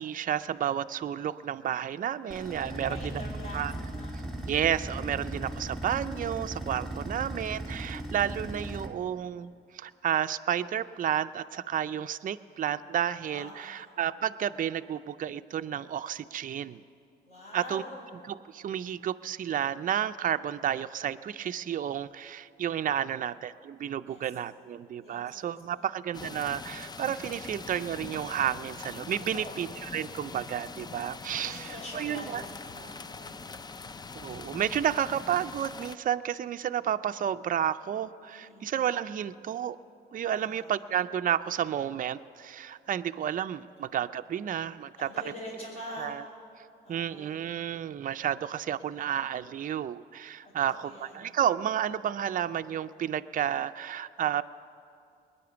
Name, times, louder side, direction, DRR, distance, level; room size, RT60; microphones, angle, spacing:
voice 1, 0.0-3.0 3.5-3.7 4.5-16.8 17.5-17.8 18.3-32.4 34.1-39.8 40.1-45.1 46.0-46.2 46.9-54.4, right 10 dB, 45° right, 10 dB, 0.4 m, -31 dB
sound 1, 2.3-8.9, right 1 dB, ahead, 2.5 m, -37 dB
voice 2, 2.7-4.2 13.2-13.9 17.2-17.9 23.1-23.2 24.0-24.3 25.0-25.9 29.2-29.7 31.3-33.9 38.3-38.7 40.3-40.8 45.0-46.1 46.8-47.4 50.4-51.4, left 1 dB, 45° left, -8 dB, 5.1 m, -45 dB
sound 2, 26.1-36.0, left 4 dB, 20° left, 0.4 m, -43 dB
20.5 x 10.0 x 7.0 m, 2.5 s
cardioid pair, 90°, 20 cm